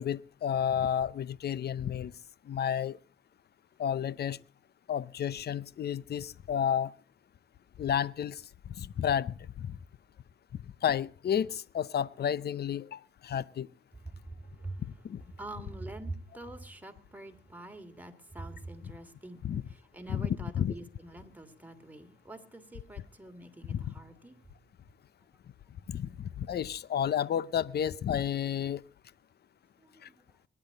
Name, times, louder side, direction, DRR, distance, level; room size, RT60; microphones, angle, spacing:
voice 1, 0.0-2.1 2.5-3.0 3.8-4.4 4.9-6.9 7.8-8.4 8.8-9.8 10.8-13.7 15.0-15.2 18.8-18.9 19.4-19.6 20.1-20.8 23.7-23.9 25.9-28.8 30.0-30.1, left 9 dB, 60° left, 0.7 m, -31 dB
voice 2, 15.4-19.4 19.9-24.4, right 2 dB, 10° right, 2.7 m, -45 dB
22.5 x 10.5 x 3.9 m
cardioid pair, 75°, 19 cm